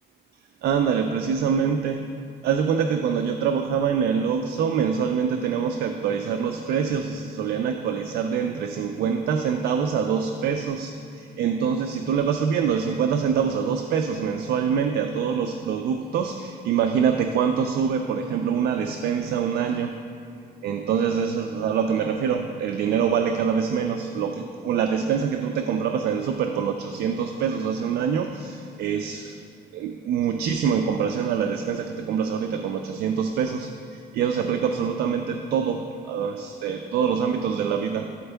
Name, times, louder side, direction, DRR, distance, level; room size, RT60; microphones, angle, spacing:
voice 1, 0.6-2.1 2.4-20.0 20.6-29.4 29.7-38.2, right 7 dB, 70° right, 5 dB, 0.4 m, -25 dB
13.0 x 4.4 x 3.4 m, 2.4 s
cardioid pair, 165°, 17 cm